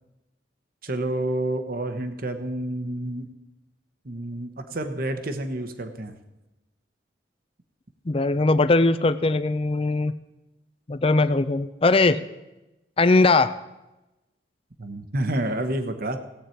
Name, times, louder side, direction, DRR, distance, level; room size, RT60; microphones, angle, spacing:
voice 1, 0.8-3.3 4.0-6.1 14.8-16.2, right 1 dB, 55° right, 8 dB, 1.1 m, -29 dB
voice 2, 8.1-10.1 10.9-12.2 13.0-13.6, left 3 dB, 30° left, 13 dB, 0.5 m, -20 dB
17.0 x 8.5 x 4.5 m, 1.0 s
head